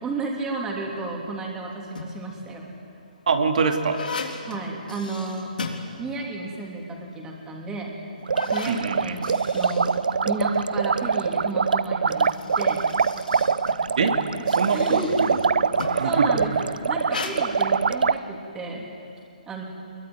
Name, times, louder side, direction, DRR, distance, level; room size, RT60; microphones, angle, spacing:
voice 1, 0.0-2.7 4.5-5.5 6.0-8.0 8.5-10.0 10.3-12.3 12.6-12.8 14.4-15.1 16.0-18.9 19.5-19.6, right 3 dB, 10° right, 0 dB, 3.1 m, -32 dB
sound 1, 1.7-2.4 3.0-6.5 6.8-6.9 7.6-7.7 8.2-10.7 11.9-16.2 17.0-17.4, left 4 dB, 85° left, 3.7 m, -37 dB
voice 2, 3.3-4.0 8.7-9.2 14.0-14.2 14.5-15.0 15.3-15.4 15.7-16.3, right 5 dB, 60° right, 5 dB, 2.7 m, -24 dB
sound 2, 8.2-18.2, right 5 dB, 80° right, 0.7 m, -23 dB
23.0 x 22.0 x 9.6 m, 2.6 s
hypercardioid pair, 160°, 5 cm